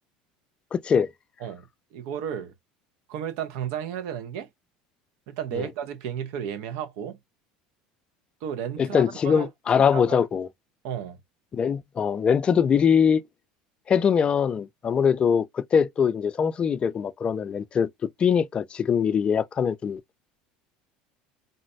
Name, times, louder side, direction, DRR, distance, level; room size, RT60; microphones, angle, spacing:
voice 1, 0.7-1.1 5.5-5.7 8.8-10.5 11.5-13.2 13.9-17.9 18.2-20.0, left 7 dB, 30° left, 0.3 m, -22 dB
voice 2, 1.4-2.5 3.1-4.5 5.3-7.2 8.4-10.2 10.8-11.2, right 9 dB, 70° right, 0.7 m, -33 dB
3.9 x 2.1 x 2.5 m
supercardioid pair, 100°, 3 cm